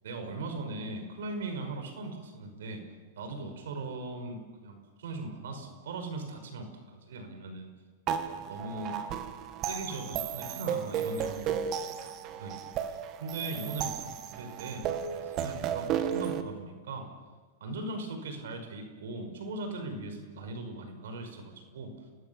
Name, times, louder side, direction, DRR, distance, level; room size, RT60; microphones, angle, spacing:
voice 1, 0.0-2.8 3.1-7.7 8.1-9.0 9.7-12.7 13.2-17.1 17.6-21.9, right 2 dB, 75° right, 6 dB, 5.3 m, -39 dB
sound 1, 8.1-16.4, right 8 dB, 40° right, 2.2 m, -34 dB
29.5 x 20.0 x 7.1 m, 1.4 s
hypercardioid pair, 125°, 0 cm